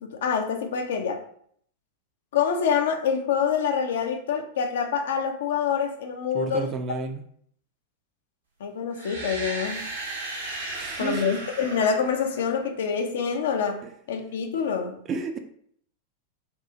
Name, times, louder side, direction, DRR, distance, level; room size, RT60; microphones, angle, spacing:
voice 1, 0.0-1.2 2.3-6.7 8.6-9.9 11.0-13.8 14.1-15.0, left 6 dB, 60° left, 0.4 m, -26 dB
voice 2, 6.3-7.2 10.7-11.4 13.8-13.9 15.1-15.4, right 4 dB, 30° right, 0.4 m, -31 dB
sound 1, 8.9-12.9, right 2 dB, 70° right, 0.9 m, -35 dB
2.8 x 2.3 x 3.7 m
figure-of-eight pair, 90°, 0 cm